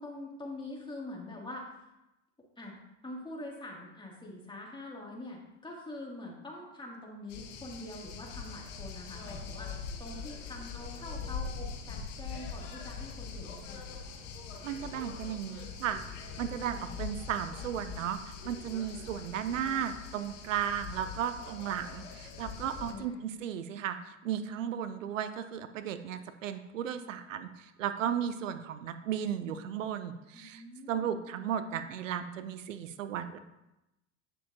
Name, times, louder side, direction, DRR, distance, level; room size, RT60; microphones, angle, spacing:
voice 1, 0.0-1.7 2.6-2.8 3.0-14.2 22.9-23.2 30.3-31.1, left 1 dB, 15° left, -3 dB, 2.7 m, -44 dB
sound 1, 7.3-22.9, left 5 dB, 75° left, 1.4 m, -42 dB
voice 2, 14.6-16.0 16.4-33.4, right 9 dB, 85° right, 10 dB, 0.7 m, -35 dB
9.9 x 6.7 x 2.9 m, 0.93 s
hypercardioid pair, 85°, 37 cm